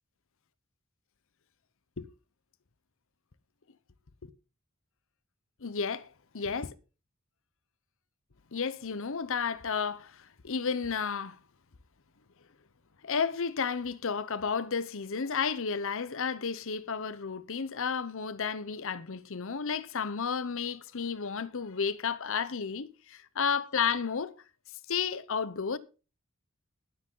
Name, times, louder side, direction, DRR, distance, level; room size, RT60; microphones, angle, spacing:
voice 1, 5.6-6.7 8.5-11.4 13.0-24.4 24.9-25.8, left 6 dB, 65° left, 0.9 m, -32 dB
20.0 x 7.7 x 3.8 m
head